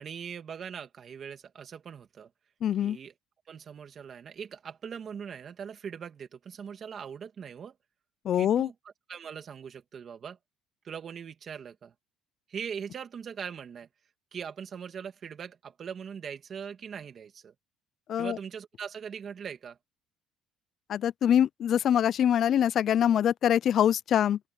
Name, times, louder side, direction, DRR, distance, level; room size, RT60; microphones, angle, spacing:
voice 1, 0.0-2.3 2.8-3.1 3.5-7.7 8.4-8.7 9.1-10.4 10.8-11.9 12.5-13.9 14.3-17.5 18.2-19.8, right 7 dB, 30° right, 2.5 m, -41 dB
voice 2, 2.6-3.0 8.2-8.7 18.1-18.4 20.9-24.4, left 10 dB, 40° left, 0.3 m, -24 dB
open air
cardioid pair, 165°, 0 cm